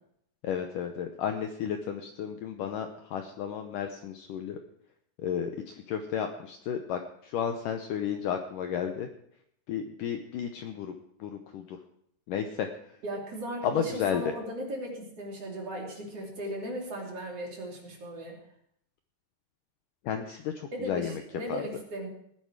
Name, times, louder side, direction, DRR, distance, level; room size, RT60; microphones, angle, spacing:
voice 1, 0.4-4.6 5.2-9.1 9.7-10.9 11.2-11.8 12.3-12.7 13.6-14.2 20.0-21.2 21.5-21.6, left 8 dB, 85° left, 6 dB, 1.9 m, -33 dB
voice 2, 13.0-18.4 20.7-22.1, right 1 dB, 40° right, -1 dB, 3.6 m, -37 dB
18.5 x 10.0 x 4.7 m, 0.71 s
omnidirectional pair, 4.9 m